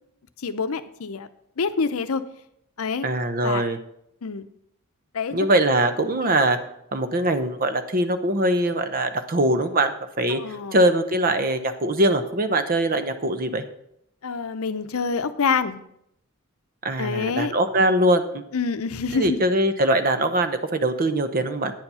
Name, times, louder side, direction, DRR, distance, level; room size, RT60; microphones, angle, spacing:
voice 1, 0.4-1.3 1.6-2.2 2.8-3.1 3.4-3.6 4.2-4.5 5.1-5.4 6.2-6.3 10.3-10.8 14.2-15.8 17.0-17.5 18.5-19.4, left 5 dB, 75° left, 12 dB, 0.6 m, -26 dB
voice 2, 3.0-3.8 5.3-6.6 6.9-10.4 10.7-13.6 16.8-18.4 19.1-21.7, right 1 dB, 40° right, 10 dB, 0.8 m, -22 dB
9.4 x 7.2 x 5.5 m, 0.76 s
head